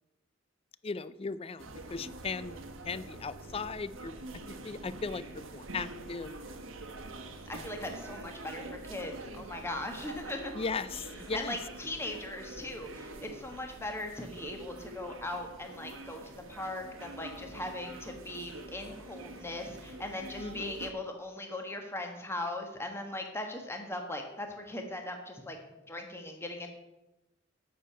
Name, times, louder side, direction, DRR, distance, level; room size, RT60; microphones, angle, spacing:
voice 1, 0.8-2.6 2.8-6.6 7.5-7.7 10.5-11.6 20.4-20.7, left 4 dB, 30° left, 16 dB, 0.4 m, -38 dB
sound 1, 1.6-20.9, right 2 dB, 80° right, 1.2 m, -46 dB
voice 2, 7.5-10.5 11.3-25.6 25.9-26.7, left 1 dB, 15° left, 3 dB, 1.3 m, -39 dB
8.7 x 6.6 x 8.6 m, 0.97 s
head